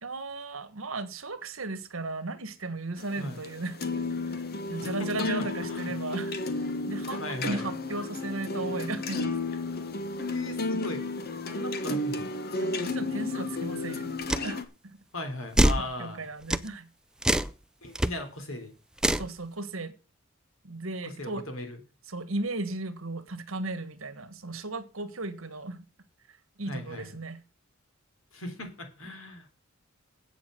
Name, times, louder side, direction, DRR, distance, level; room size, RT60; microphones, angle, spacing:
voice 1, 0.0-4.4 4.7-9.4 12.6-15.0 15.8-16.9 19.1-19.9 20.6-21.5 22.1-25.9 26.6-27.4, right 2 dB, 80° right, 1.5 m, -36 dB
sound 1, 3.0-14.6, left 2 dB, 50° left, 1.4 m, -33 dB
voice 2, 4.8-5.3 5.7-5.9 7.2-7.6 10.3-11.1 11.4-12.3 15.1-16.3 17.8-18.7 21.0-21.8 26.7-27.1 28.3-29.5, left 1 dB, 80° left, 3.4 m, -38 dB
sound 2, 14.3-14.5 15.6-15.9 16.5-16.7 17.2-17.5 18.0-18.1 19.0-19.3, right 1 dB, 5° right, 0.4 m, -23 dB
8.4 x 7.3 x 7.8 m
head